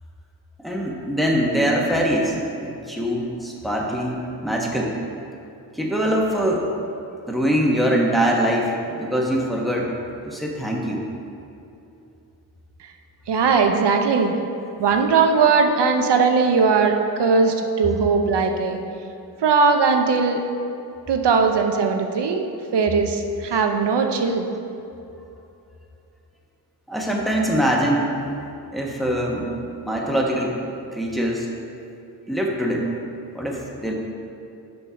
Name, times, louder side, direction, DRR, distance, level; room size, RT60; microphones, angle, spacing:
voice 1, 0.6-5.0 5.7-6.7 7.3-9.9 10.2-11.0 26.9-28.1 28.7-29.5 29.9-30.6 30.9-31.5 32.3-32.9 33.3-33.9, equal, ahead, -2 dB, 1.1 m, -23 dB
voice 2, 13.3-14.3 14.8-18.8 19.4-20.4 21.1-22.5 22.7-24.5, right 4 dB, 80° right, 4 dB, 0.8 m, -19 dB
7.0 x 5.4 x 5.1 m, 2.7 s
wide cardioid pair, 90°, 41 cm